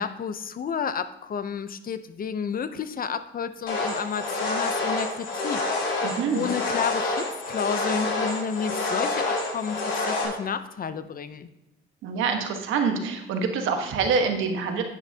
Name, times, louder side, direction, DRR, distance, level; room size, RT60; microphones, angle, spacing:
voice 1, 0.0-5.6 6.0-6.1 6.3-11.5, left 6 dB, 45° left, 12 dB, 0.7 m, -31 dB
sound 1, 3.7-10.3, left 2 dB, 70° left, 3.4 m, -28 dB
voice 2, 6.0-6.4 12.0-14.8, right 5 dB, 85° right, 4 dB, 1.5 m, -26 dB
10.0 x 9.5 x 2.9 m, 0.91 s
cardioid pair, 90°, 20 cm